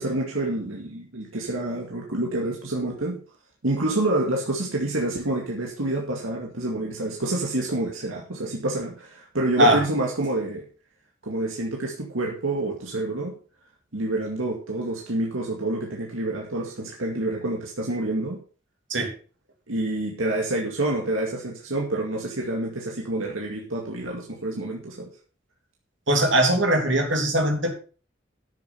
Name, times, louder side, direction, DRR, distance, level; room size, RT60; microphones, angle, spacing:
voice 1, 0.0-3.2 3.6-10.7 11.2-13.3 13.9-18.4 19.7-25.1, right 2 dB, 85° right, -1 dB, 2.3 m, -28 dB
voice 2, 26.1-27.7, right 1 dB, 65° right, 3 dB, 3.2 m, -20 dB
11.5 x 7.0 x 5.7 m, 0.38 s
head